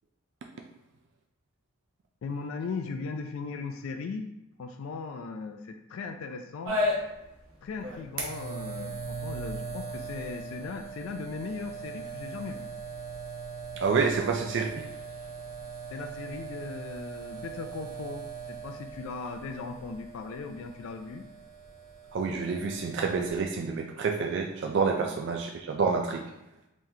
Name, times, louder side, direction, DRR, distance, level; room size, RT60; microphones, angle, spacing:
voice 1, 2.2-4.3 4.6-6.8 7.6-12.7 15.9-21.3 25.0-25.1, left 4 dB, 70° left, 6 dB, 0.3 m, -38 dB
sound 1, 6.6-23.4, right 1 dB, 75° right, 0.8 m, -38 dB
voice 2, 13.8-14.9 22.1-26.2, right 5 dB, 55° right, 2 dB, 0.3 m, -28 dB
3.8 x 3.0 x 2.7 m, 0.91 s
head